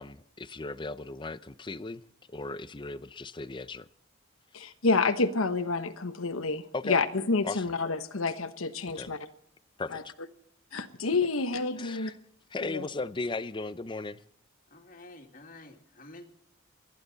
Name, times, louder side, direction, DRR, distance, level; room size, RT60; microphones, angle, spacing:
voice 1, 0.0-2.0 2.3-3.9 4.6-4.7 6.7-7.0 7.4-7.6 8.9-9.1 9.8-10.1 11.8-12.2 12.5-14.2, left 3 dB, 25° left, 0.6 m, -37 dB
voice 2, 4.5-9.2 9.9-10.0 10.7-12.1 12.6-12.9, left 3 dB, 85° left, 1.1 m, -29 dB
voice 3, 14.7-16.2, left 2 dB, 45° left, 2.2 m, -49 dB
29.0 x 10.5 x 4.0 m
head